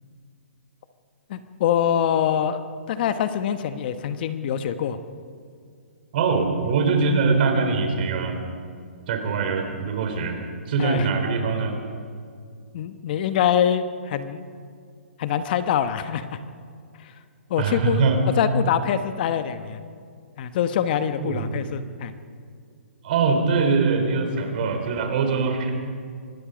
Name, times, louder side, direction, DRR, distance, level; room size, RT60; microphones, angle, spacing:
voice 1, 1.3-2.6 2.9-5.0 10.8-11.1 12.7-14.5 15.2-16.4 17.0-17.1 17.5-18.0 18.4-19.8 20.4-22.1, left 9 dB, 45° left, 10 dB, 1.1 m, -24 dB
voice 2, 6.1-8.4 9.1-10.4 10.7-11.8 17.6-18.2 21.2-21.6 23.0-25.7, right 4 dB, 45° right, 4 dB, 4.2 m, -22 dB
25.5 x 20.0 x 5.2 m, 2.2 s
hypercardioid pair, 145°, 7 cm